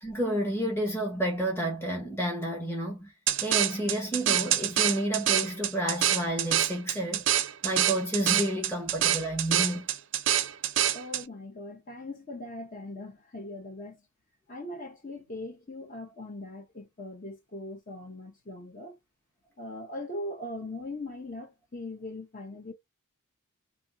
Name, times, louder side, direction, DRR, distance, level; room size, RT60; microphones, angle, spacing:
voice 1, 0.0-3.1 3.4-7.3 7.6-9.9, right 1 dB, 10° left, 1.1 m, -30 dB
sound 1, 3.3-11.2, right 11 dB, 60° right, 0.5 m, -26 dB
voice 2, 10.9-14.1 14.5-19.0 19.6-22.7, left 1 dB, 40° left, 1.0 m, -40 dB
3.5 x 2.6 x 2.6 m
head